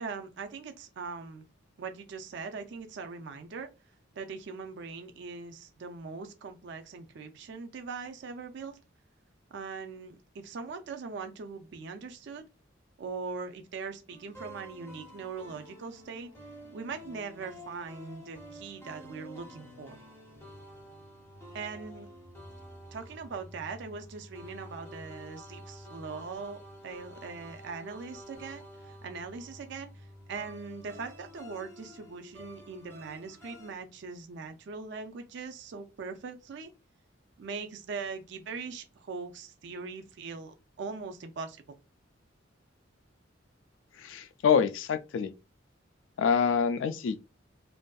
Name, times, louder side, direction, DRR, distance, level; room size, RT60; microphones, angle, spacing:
voice 1, 0.0-1.5 1.8-3.7 4.1-8.8 9.5-12.4 13.0-16.3 16.7-20.0 21.5-22.1 22.9-36.7 37.4-41.6, right 4 dB, 60° right, 0.4 m, -41 dB
sound 1, 14.1-33.7, equal, 10° left, 0.6 m, -49 dB
voice 2, 44.0-45.3 46.2-47.2, left 6 dB, 70° left, 0.3 m, -26 dB
2.6 x 2.4 x 2.2 m
head